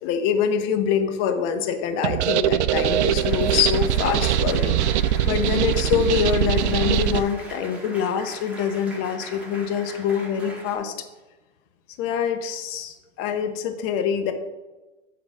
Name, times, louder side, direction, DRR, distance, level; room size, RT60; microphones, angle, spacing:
voice 1, 0.0-4.7 5.3-10.9 12.0-14.3, left 8 dB, 35° left, 7 dB, 1.0 m, -25 dB
sound 1, 2.0-7.2, right 11 dB, 65° right, 0.5 m, -22 dB
Applause, 2.5-10.8, right 1 dB, 5° right, 2.0 m, -41 dB
8.3 x 4.0 x 6.6 m, 1.1 s
hypercardioid pair, 125°, 37 cm